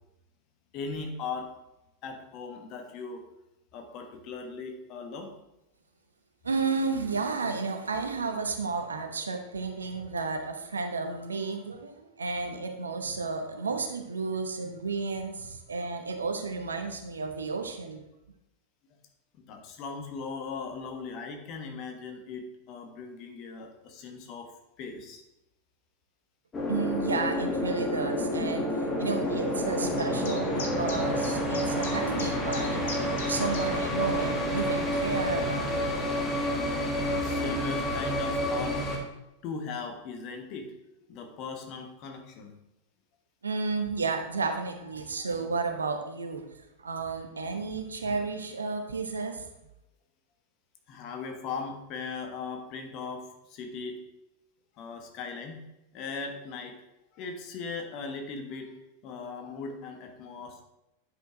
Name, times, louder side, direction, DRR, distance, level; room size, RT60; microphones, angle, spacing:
voice 1, 0.7-1.5 2.0-3.2 3.7-5.3 19.3-24.5 24.8-25.2 37.0-38.8 39.4-40.7 41.1-42.5 50.9-54.0 54.8-55.6 55.9-56.8 57.1-60.6, left 4 dB, 40° left, 4 dB, 1.3 m, -39 dB
voice 2, 6.4-18.0 26.7-28.7 29.0-32.9 33.3-35.7 43.4-46.4 46.8-49.4, right 4 dB, 75° right, 6 dB, 0.9 m, -32 dB
sound 1, 26.5-39.0, equal, 20° left, 1.7 m, -29 dB
sound 2, 30.0-33.7, left 3 dB, 60° left, 1.4 m, -40 dB
9.5 x 5.5 x 3.8 m, 0.91 s
figure-of-eight pair, 90°, 0 cm